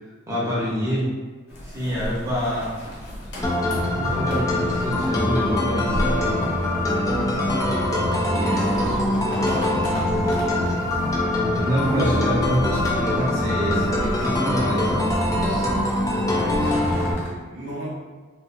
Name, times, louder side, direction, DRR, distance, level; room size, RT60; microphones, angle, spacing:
voice 1, 0.3-1.1 1.6-2.8 3.9-6.3 8.2-10.5 11.5-15.7, equal, 15° right, -7 dB, 0.8 m, -27 dB
sound 1, 1.5-17.3, equal, 70° left, 0.8 m, -36 dB
sound 2, 3.4-17.1, left 1 dB, 20° left, 0.4 m, -23 dB
voice 2, 11.9-12.6 16.4-17.9, left 1 dB, 80° right, -7 dB, 0.8 m, -32 dB
2.4 x 2.4 x 2.5 m, 1.4 s
head